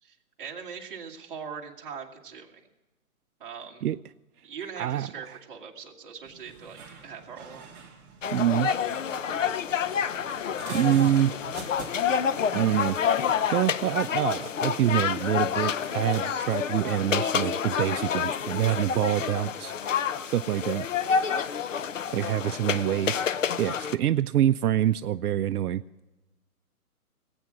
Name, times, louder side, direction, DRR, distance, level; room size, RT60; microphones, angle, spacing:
voice 1, 0.0-2.6 3.4-3.9 4.4-7.7, right 6 dB, 35° right, 0 dB, 1.8 m, -41 dB
voice 2, 4.8-5.4 8.3-8.7 10.7-11.4 12.5-13.0 13.5-19.7 20.3-20.9 22.1-25.8, right 11 dB, 80° right, 12 dB, 0.6 m, -26 dB
sound 1, 6.2-14.3, right 5 dB, 10° right, 1.1 m, -45 dB
sound 2, 8.2-23.9, left 7 dB, 55° left, 0.7 m, -28 dB
19.0 x 8.8 x 5.9 m, 1.1 s
hypercardioid pair, 165°, 45 cm